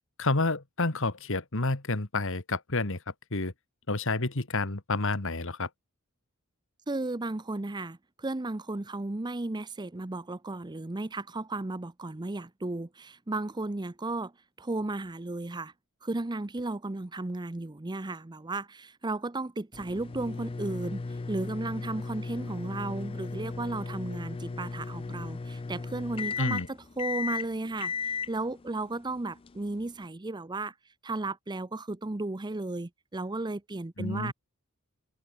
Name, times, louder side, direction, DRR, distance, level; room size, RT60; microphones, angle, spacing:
voice 1, 0.2-3.0 3.3-3.5 3.9-5.7 26.4-26.7 34.0-34.3, left 3 dB, 60° left, 1.9 m, -29 dB
voice 2, 6.9-14.3 14.6-15.7 16.0-30.7 31.0-34.3, right 2 dB, 20° right, 0.6 m, -34 dB
sound 1, 19.7-30.1, left 4 dB, 25° left, 0.4 m, -36 dB
open air
head